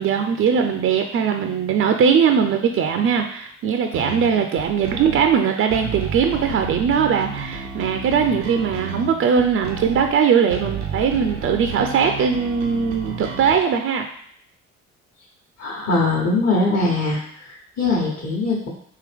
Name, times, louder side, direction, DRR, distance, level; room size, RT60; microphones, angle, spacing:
voice 1, 0.0-14.1, right 7 dB, 40° right, 5 dB, 0.4 m, -20 dB
sound 1, 3.9-13.5, right 4 dB, 85° right, 0.6 m, -32 dB
voice 2, 15.6-18.7, left 2 dB, 40° left, -5 dB, 1.2 m, -22 dB
3.7 x 2.8 x 3.5 m, 0.64 s
hypercardioid pair, 45°, 35 cm